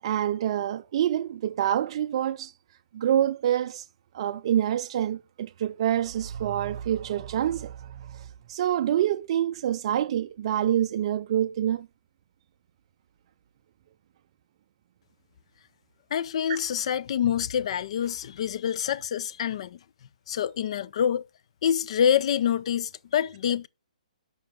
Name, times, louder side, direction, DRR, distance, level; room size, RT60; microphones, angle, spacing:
voice 1, 0.0-2.5 2.9-3.9 4.1-11.9 16.5-16.6, right 11 dB, 40° right, 0.4 m, -27 dB
voice 2, 16.1-19.8 20.3-21.2 21.6-23.7, left 9 dB, 50° left, 0.4 m, -26 dB
6.7 x 5.4 x 3.6 m
hypercardioid pair, 155°, 4 cm